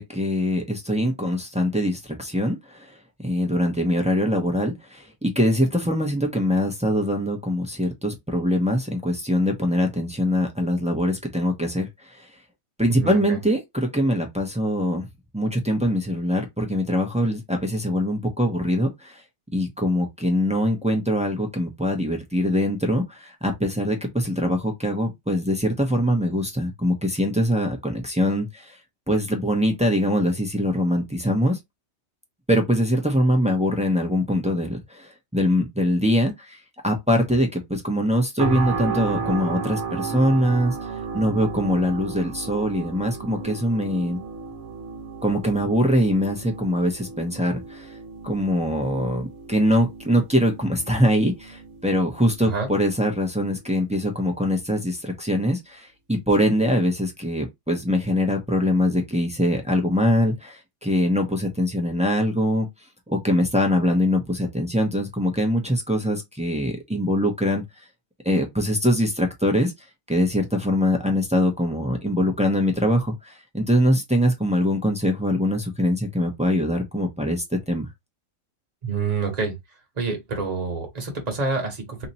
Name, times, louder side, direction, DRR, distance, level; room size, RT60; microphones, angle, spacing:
voice 1, 0.0-2.9 3.2-11.9 12.8-15.1 15.3-19.1 19.5-28.7 29.1-31.6 32.5-36.6 36.8-40.7 41.1-44.2 45.2-47.9 48.2-62.7 63.1-67.6 68.2-69.7 70.1-77.9, equal, 5° right, 0.7 m, -23 dB
voice 2, 12.9-13.4 52.4-52.7 78.8-79.6 80.0-82.1, right 4 dB, 30° right, 1.3 m, -27 dB
sound 1, 38.4-53.4 53.9-54.1, right 5 dB, 60° right, 1.2 m, -34 dB
2.9 x 2.8 x 4.1 m
omnidirectional pair, 1.4 m